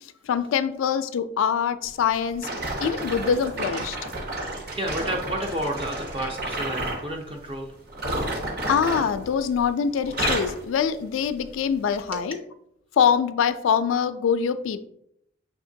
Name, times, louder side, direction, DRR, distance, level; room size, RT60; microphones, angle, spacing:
voice 1, 0.2-2.5 2.8-4.0 8.7-12.4 13.0-14.9, left 7 dB, 85° left, 11 dB, 0.3 m, -24 dB
sound 1, 2.4-7.1 7.9-9.7 10.0-10.6 11.2-11.4 12.1-12.2, right 1 dB, 50° right, 0.8 m, -31 dB
voice 2, 4.3-7.7 12.1-12.2, right 1 dB, 30° right, 2 dB, 0.4 m, -31 dB
6.1 x 2.8 x 2.6 m, 0.75 s
head